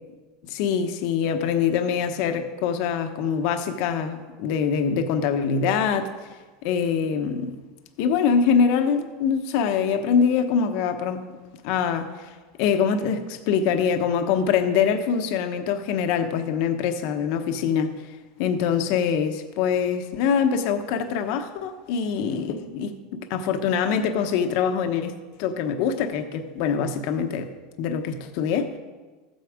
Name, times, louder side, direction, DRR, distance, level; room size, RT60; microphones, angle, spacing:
voice 1, 0.5-6.1 6.6-7.6 8.0-11.2 11.6-17.9 18.4-25.1 25.4-27.5 27.8-28.7, left 7 dB, 60° left, 7 dB, 0.9 m, -24 dB
14.0 x 8.0 x 5.0 m, 1.3 s
supercardioid pair, 140°, 0 cm